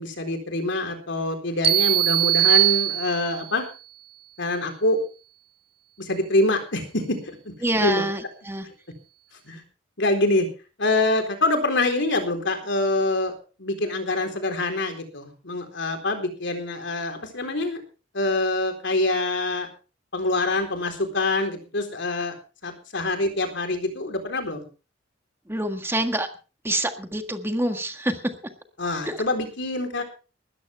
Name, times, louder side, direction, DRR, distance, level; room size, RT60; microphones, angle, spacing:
voice 1, 0.0-3.7 4.4-5.0 6.0-7.4 7.8-8.0 8.6-8.7 9.5-9.6 10.0-10.5 10.8-13.3 13.6-17.8 18.1-19.7 20.1-22.3 22.6-24.6 28.8-30.0, left 2 dB, 65° left, 6 dB, 4.0 m, -25 dB
sound 1, 1.6-3.5, right 14 dB, 30° right, 1.0 m, -21 dB
voice 2, 7.6-8.7 25.5-26.3 26.6-28.3 29.0-29.2, right 1 dB, 10° right, 7 dB, 1.6 m, -26 dB
19.5 x 14.0 x 3.5 m, 0.34 s
head